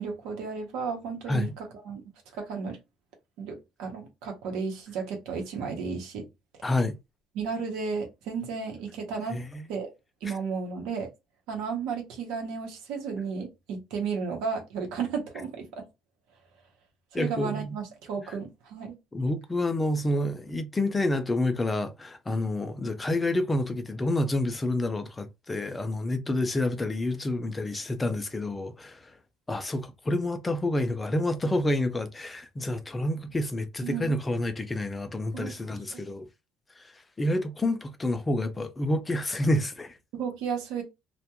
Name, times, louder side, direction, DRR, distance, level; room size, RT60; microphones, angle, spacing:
voice 1, 0.0-2.0 2.3-2.8 3.4-6.3 7.3-9.4 9.7-9.9 10.2-11.1 11.5-15.9 17.1-18.9 33.8-34.2 35.3-35.6 35.9-36.0 40.1-40.8, right 5 dB, 80° right, 0.8 m, -33 dB
voice 2, 6.6-7.0 9.3-9.7 10.3-10.4 17.1-17.7 19.1-29.1 29.5-36.3 36.8-36.9 37.2-40.0, left 1 dB, 15° left, 0.3 m, -28 dB
2.3 x 2.1 x 2.8 m
cardioid pair, 165°, 0 cm